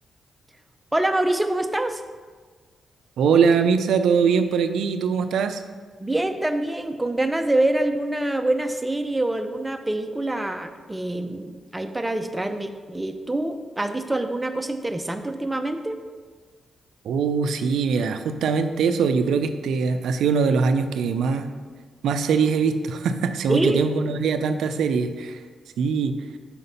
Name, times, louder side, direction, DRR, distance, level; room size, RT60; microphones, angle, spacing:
voice 1, 0.9-2.0 6.0-16.0 23.5-23.8, right 1 dB, 15° right, 7 dB, 0.6 m, -25 dB
voice 2, 3.2-5.6 17.0-21.5 22.0-25.4 25.8-26.2, right 5 dB, 80° right, 9 dB, 0.4 m, -22 dB
5.9 x 4.0 x 5.4 m, 1.5 s
supercardioid pair, 55°, 0 cm